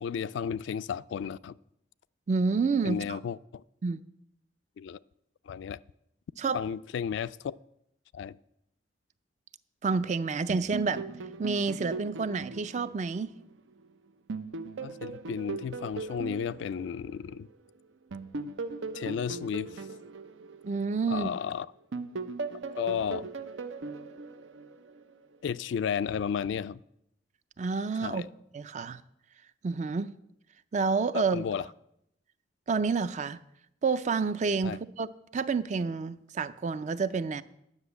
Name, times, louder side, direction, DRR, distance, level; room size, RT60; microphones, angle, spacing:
voice 1, 0.0-1.6 2.8-3.6 4.8-5.0 5.5-5.8 6.5-7.5 8.1-8.4 14.8-17.5 18.9-19.9 21.1-21.7 22.8-23.3 25.4-26.8 28.0-28.3 31.1-31.7 34.6-34.8, left 7 dB, 75° left, 0.3 m, -33 dB
voice 2, 2.3-3.2 3.8-4.0 6.4-6.6 9.8-11.1 11.4-13.3 20.6-21.4 27.6-28.2 28.5-29.0 29.6-30.1 30.7-31.4 32.7-33.4 33.8-37.4, right 4 dB, 40° right, 0.4 m, -29 dB
sound 1, 10.5-13.8 14.3-17.5 18.1-21.4 21.9-25.2, right 4 dB, 90° right, 0.6 m, -39 dB
9.8 x 6.0 x 8.2 m
head